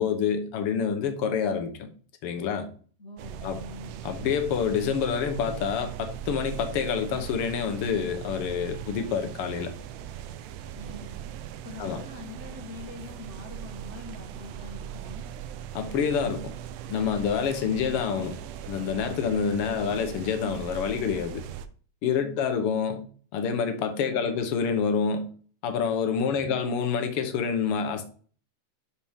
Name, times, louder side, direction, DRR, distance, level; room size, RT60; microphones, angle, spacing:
voice 1, 0.0-1.9 2.2-2.7 3.4-3.6 4.0-9.7 11.8-12.0 15.7-16.5 16.9-18.4 18.7-21.4 22.0-23.1 23.3-25.3 25.6-28.1, left 6 dB, 60° left, 1.6 m, -27 dB
voice 2, 3.0-4.0 10.6-11.1 11.6-15.2 22.2-22.4 24.0-24.5 26.3-26.6 27.2-27.3, left 2 dB, 35° left, 1.2 m, -44 dB
sound 1, 3.2-21.7, right 10 dB, 85° right, 2.2 m, -39 dB
11.5 x 4.4 x 3.6 m
omnidirectional pair, 3.6 m